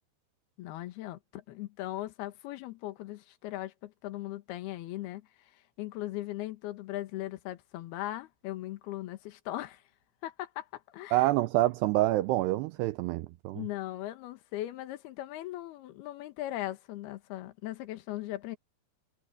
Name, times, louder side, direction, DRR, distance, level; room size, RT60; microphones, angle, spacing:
voice 1, 0.6-9.8 10.2-11.3 13.5-18.6, left 15 dB, 65° left, 3.1 m, -39 dB
voice 2, 11.1-13.6, right 17 dB, 85° right, 2.4 m, -27 dB
omnidirectional pair, 5.3 m